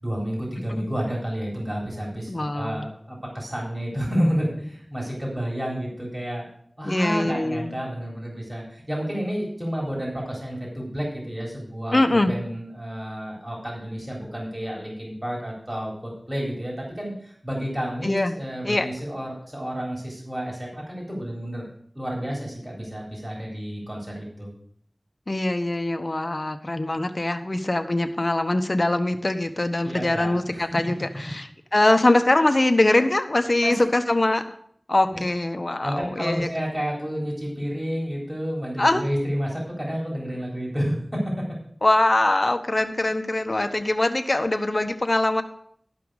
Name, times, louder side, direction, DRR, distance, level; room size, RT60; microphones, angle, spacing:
voice 1, 0.0-6.5 6.8-21.7 22.0-24.5 29.8-30.7 33.6-33.8 35.1-35.2 35.8-41.2, equal, 30° right, -3 dB, 3.8 m, -30 dB
voice 2, 2.3-2.8 6.8-7.8 11.9-12.3 18.0-18.4 18.6-18.9 25.3-34.4 34.9-36.5 38.8-39.0 41.8-45.4, left 2 dB, 50° left, 7 dB, 1.0 m, -22 dB
12.5 x 5.6 x 6.3 m, 0.65 s
wide cardioid pair, 45°, 0 cm